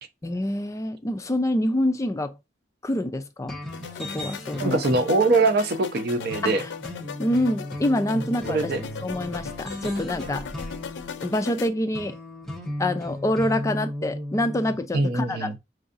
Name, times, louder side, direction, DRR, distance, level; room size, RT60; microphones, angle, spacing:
voice 1, 0.2-2.4 2.8-3.6 3.9-4.8 6.4-6.7 7.2-8.7 9.0-10.5 11.2-12.2 12.8-15.6, left 1 dB, 20° left, 0.4 m, -26 dB
sound 1, 3.5-14.8, left 1 dB, ahead, 0.8 m, -36 dB
sound 2, 3.7-11.7, left 6 dB, 85° left, 0.4 m, -38 dB
voice 2, 4.6-6.6 8.5-8.8 14.9-15.5, right 3 dB, 60° right, 0.6 m, -22 dB
4.6 x 2.6 x 2.4 m
head